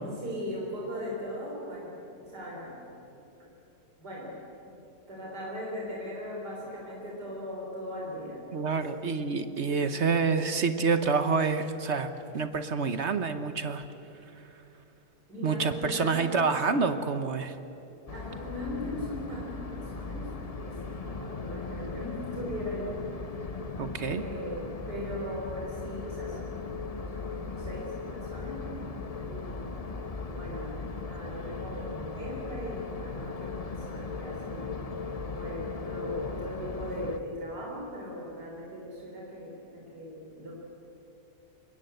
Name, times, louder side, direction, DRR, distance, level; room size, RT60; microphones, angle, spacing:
voice 1, 0.0-3.1 3.4-3.5 4.0-4.3 4.7-4.8 5.1-8.4 9.3-10.4 15.3-16.3 18.1-23.1 23.3-23.6 24.1-28.8 29.2-29.8 30.3-34.8 35.3-40.5, equal, 70° right, -3 dB, 4.5 m, -39 dB
voice 2, 8.5-13.8 15.4-17.6 23.8-24.2, right 5 dB, 45° right, 10 dB, 1.1 m, -28 dB
sound 1, 18.1-37.2, left 4 dB, 30° left, 0.8 m, -38 dB
25.0 x 21.0 x 7.9 m, 2.9 s
omnidirectional pair, 1.8 m